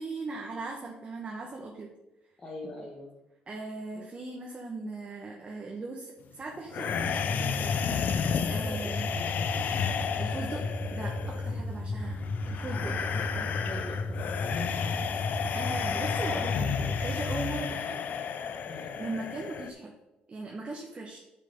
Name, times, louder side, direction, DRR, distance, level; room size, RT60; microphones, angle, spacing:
voice 1, 0.0-1.9 3.5-7.9 8.5-9.1 10.2-12.2 12.5-13.5 15.5-18.0 19.0-19.9 20.3-21.2, right 3 dB, 35° right, 0 dB, 1.2 m, -39 dB
voice 2, 2.4-3.1 3.9-4.1 8.6-9.4 12.7-14.9 18.7-18.9, left 1 dB, 30° left, -3 dB, 1.8 m, -44 dB
sound 1, 6.7-19.7, left 7 dB, 60° left, 0.6 m, -32 dB
sound 2, 6.9-17.3, left 2 dB, 10° right, 3.2 m, -34 dB
8.1 x 6.5 x 3.7 m, 0.97 s
cardioid pair, 80°, 3 cm